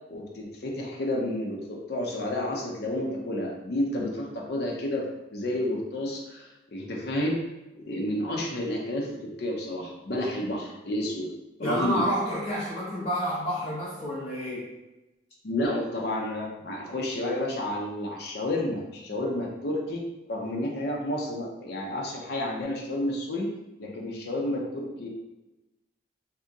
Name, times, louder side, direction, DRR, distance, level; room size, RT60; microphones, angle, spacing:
voice 1, 0.1-5.0 5.3-7.4 7.7-11.3 11.6-12.0 15.4-23.5 23.8-25.1, left 1 dB, 60° left, -1 dB, 0.6 m, -30 dB
voice 2, 11.6-14.7, equal, 30° left, -7 dB, 0.9 m, -29 dB
3.6 x 2.7 x 2.6 m, 1.0 s
head